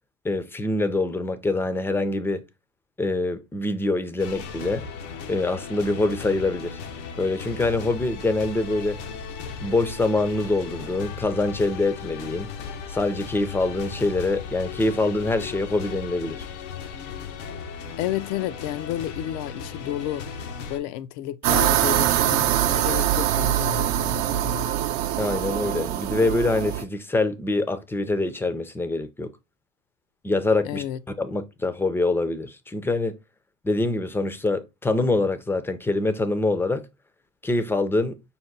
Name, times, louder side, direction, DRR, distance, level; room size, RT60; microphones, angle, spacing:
voice 1, 0.2-2.4 3.0-4.8 5.3-6.8 7.2-9.0 9.6-12.5 12.9-16.4 25.2-29.3 30.2-30.8 31.2-33.2 33.6-36.9 37.4-38.2, left 2 dB, 5° left, 0.4 m, -25 dB
sound 1, 4.2-20.8, left 6 dB, 90° left, 0.9 m, -36 dB
voice 2, 18.0-20.3 20.7-24.7 30.6-31.0, left 13 dB, 70° left, 0.5 m, -31 dB
sound 2, 21.4-26.8, right 12 dB, 60° right, 0.6 m, -23 dB
5.4 x 2.2 x 3.8 m
supercardioid pair, 105°, 35 cm